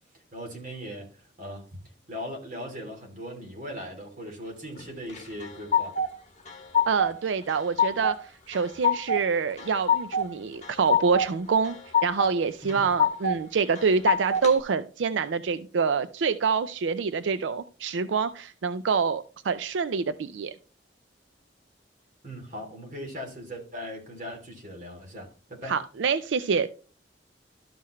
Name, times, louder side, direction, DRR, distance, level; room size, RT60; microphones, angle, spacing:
voice 1, 0.3-1.1 1.4-1.8 2.1-6.0 12.6-12.9 22.2-25.7, equal, 45° right, 3.0 m, -39 dB
sound 1, 5.1-6.1 6.5-7.2 7.5-8.2 8.5-9.2 9.6-10.3 10.6-11.3 11.6-12.3 12.7-13.4 13.8-14.5, left 4 dB, 40° left, 1.2 m, -25 dB
voice 2, 6.9-11.8 12.0-20.5 25.7-26.7, right 5 dB, 85° right, 0.4 m, -26 dB
12.5 x 5.7 x 3.1 m
head